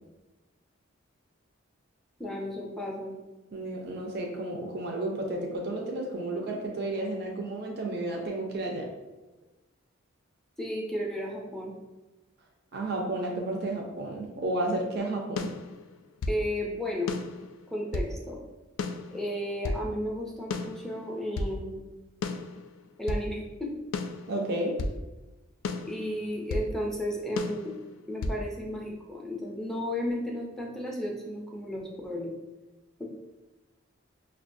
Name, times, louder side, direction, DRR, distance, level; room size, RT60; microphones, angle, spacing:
voice 1, 2.2-3.1 10.6-11.7 16.3-17.1 17.7-18.4 19.1-21.8 23.0-23.7 25.9-27.8 28.1-32.3 33.0-33.1, equal, ahead, -2 dB, 0.4 m, -33 dB
voice 2, 3.5-8.9 12.7-15.5 24.3-24.8, right 1 dB, 50° right, 1 dB, 0.5 m, -32 dB
sound 1, 15.4-16.4 17.1-18.1 18.8-19.9 20.5-21.5 22.2-23.3 23.9-25.0 25.6-26.7 27.4-28.4, left 3 dB, 80° left, 0.3 m, -34 dB
5.4 x 2.2 x 2.5 m, 1.1 s
head